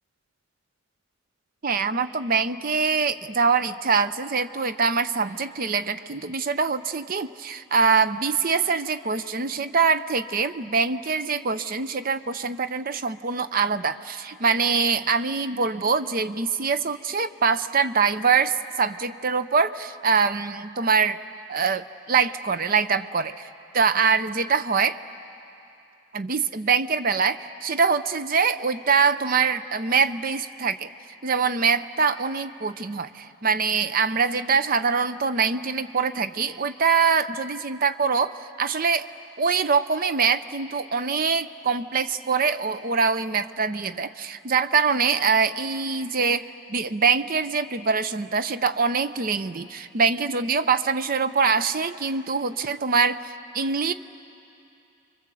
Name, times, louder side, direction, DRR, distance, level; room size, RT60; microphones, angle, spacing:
voice 1, 1.6-21.2 21.5-23.5 23.7-25.0 26.1-30.9 31.2-39.1 39.4-53.9, right 5 dB, 40° right, 12 dB, 0.6 m, -24 dB
30.0 x 24.0 x 7.7 m, 2.7 s
head